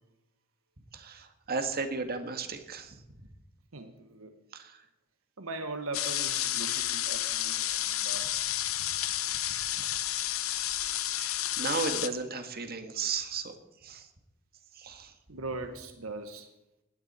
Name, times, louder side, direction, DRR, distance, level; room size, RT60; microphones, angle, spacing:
voice 1, 0.9-3.0 4.5-4.8 7.7-7.9 9.8-10.2 10.5-10.7 11.2-13.6 13.8-14.1 14.7-15.1, right 4 dB, 45° right, 7 dB, 1.8 m, -35 dB
voice 2, 3.7-4.3 5.4-8.3 15.3-16.5, right 2 dB, 75° right, 7 dB, 1.4 m, -40 dB
sound 1, 5.9-12.1, left 12 dB, 75° left, 1.0 m, -31 dB
19.5 x 16.0 x 4.3 m, 0.93 s
head